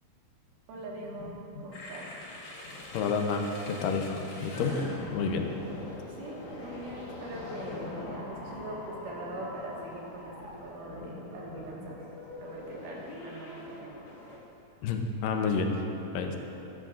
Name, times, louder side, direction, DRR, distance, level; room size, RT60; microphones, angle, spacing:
sound 1, 0.7-3.1 3.9-6.4 7.3-9.4 10.8-12.5, left 3 dB, 65° left, 2.0 m, -47 dB
voice 1, 0.7-2.1 6.1-12.0 12.4-14.1, right 1 dB, 75° right, -4 dB, 3.2 m, -42 dB
sound 2, 1.7-14.4, left 1 dB, 45° left, 2.3 m, -43 dB
voice 2, 2.9-4.8 5.1-5.5 14.8-15.7 16.1-16.4, left 5 dB, 85° left, 4 dB, 2.4 m, -29 dB
14.5 x 11.5 x 2.5 m, 2.9 s
omnidirectional pair, 3.8 m